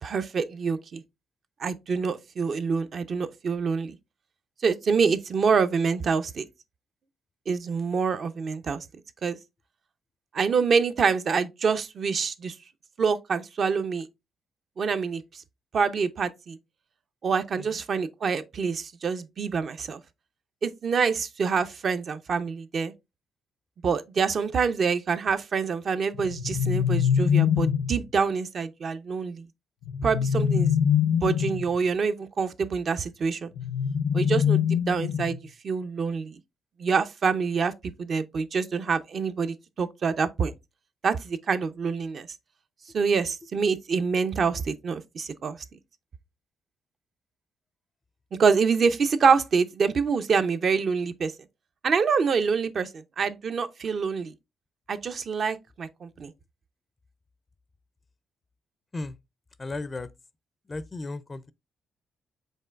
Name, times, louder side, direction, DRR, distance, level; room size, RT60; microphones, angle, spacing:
voice 1, 0.0-1.0 1.6-4.0 4.6-6.4 7.5-8.8 9.2-9.4 10.3-12.5 13.0-14.1 14.8-15.2 15.7-16.6 17.2-20.0 20.6-22.9 23.8-29.4 30.0-30.7 31.2-33.5 34.1-35.4 35.6-36.4 36.8-37.7 38.0-40.5 41.0-42.3 42.9-45.6 48.4-51.3 51.8-54.3 54.9-56.3, right 5 dB, 50° right, 0.5 m, -26 dB
sound 1, 26.1-28.0 29.8-31.7 33.5-35.5, left 8 dB, 80° left, 0.6 m, -24 dB
voice 2, 59.6-60.1 60.7-61.5, left 2 dB, 25° left, 0.4 m, -35 dB
5.4 x 3.8 x 2.3 m
cardioid pair, 90°, 0 cm